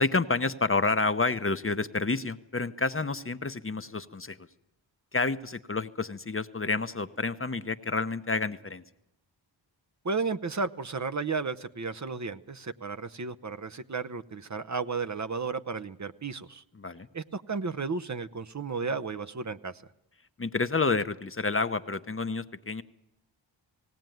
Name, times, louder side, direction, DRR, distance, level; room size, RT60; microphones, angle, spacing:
voice 1, 0.0-4.4 5.1-8.8 16.8-17.1 20.4-22.8, left 3 dB, 30° left, 11 dB, 0.8 m, -29 dB
voice 2, 10.0-16.6 17.1-19.8, right 4 dB, 40° right, 9 dB, 0.8 m, -33 dB
18.5 x 17.5 x 9.2 m, 0.90 s
cardioid pair, 60°, 45 cm